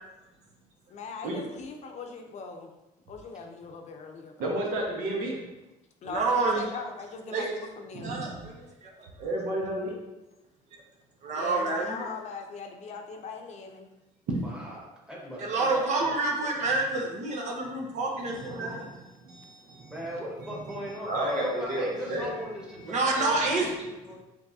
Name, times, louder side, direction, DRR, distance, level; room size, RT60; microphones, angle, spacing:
voice 1, 0.9-2.8 3.1-4.5 6.0-8.1 11.3-13.9, left 4 dB, 50° left, 3 dB, 0.6 m, -40 dB
voice 2, 4.4-5.3 7.9-8.1 9.2-9.9 18.1-19.0 19.2-19.9 20.4-20.8 21.1-22.3, right 1 dB, 70° right, -2 dB, 1.2 m, -32 dB
voice 3, 6.0-6.6 7.3-7.5 8.0-8.5 8.8-8.9 11.2-12.0 15.4-18.8 22.9-23.7, right 3 dB, 55° right, 0 dB, 0.9 m, -28 dB
voice 4, 14.4-16.1 19.9-24.2, equal, 5° right, -4 dB, 1.4 m, -38 dB
5.2 x 3.3 x 2.7 m, 1.0 s
cardioid pair, 100°, 15 cm